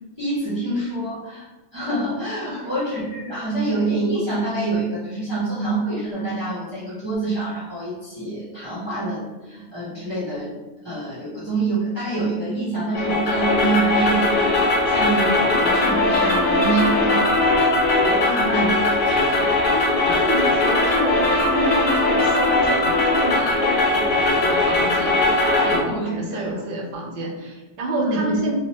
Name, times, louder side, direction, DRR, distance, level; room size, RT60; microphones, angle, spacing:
voice 1, 0.2-1.4 1.7-10.5 10.8-17.6 17.9-19.5 20.0-20.2 25.9-26.5 28.0-28.4, right 3 dB, 25° right, -11 dB, 0.8 m, -26 dB
sound 1, 12.9-25.8, left 2 dB, 90° left, 1.1 m, -19 dB
voice 2, 19.6-28.6, right 1 dB, 55° right, 0 dB, 0.7 m, -29 dB
2.9 x 2.1 x 3.0 m, 1.1 s
omnidirectional pair, 1.2 m